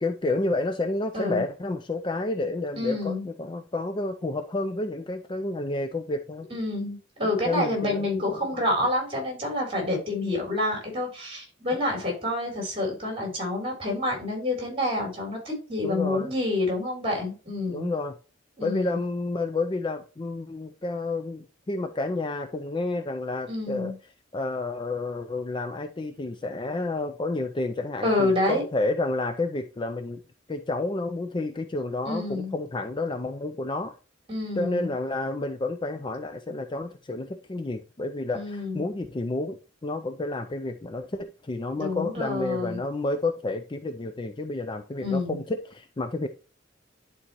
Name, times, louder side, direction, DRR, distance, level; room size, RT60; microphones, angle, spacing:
voice 1, 0.0-6.5 7.5-8.4 9.9-10.0 15.8-16.3 17.7-18.1 18.6-23.9 24.3-30.2 30.5-33.9 34.6-46.3, left 2 dB, 25° left, 7 dB, 0.4 m, -30 dB
voice 2, 2.8-3.3 6.5-17.9 18.6-19.0 23.5-23.9 28.0-28.6 32.1-32.5 34.3-34.9 38.3-38.8 41.8-42.8 45.0-45.4, left 2 dB, 30° right, 0 dB, 3.6 m, -28 dB
11.0 x 4.1 x 3.0 m, 0.35 s
head